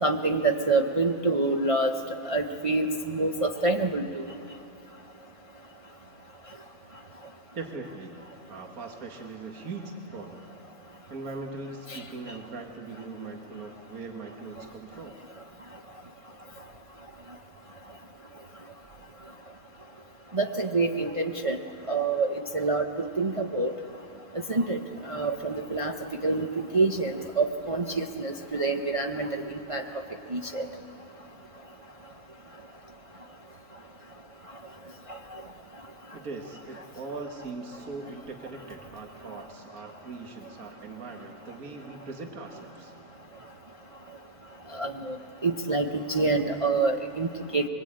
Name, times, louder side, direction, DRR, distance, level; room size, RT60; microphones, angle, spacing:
voice 1, 0.0-1.9 2.3-4.2 11.9-12.0 20.3-21.6 21.9-22.3 22.5-23.7 24.5-24.8 25.1-25.9 26.2-26.5 26.7-29.4 29.7-29.8 30.3-30.7 44.7-45.2 45.4-47.6, right 3 dB, 25° right, 2 dB, 0.8 m, -26 dB
voice 2, 7.5-8.1 8.5-10.4 11.1-15.2 36.1-42.9, right 3 dB, 65° right, 2 dB, 2.1 m, -40 dB
23.5 x 22.5 x 8.8 m, 2.7 s
omnidirectional pair, 1.6 m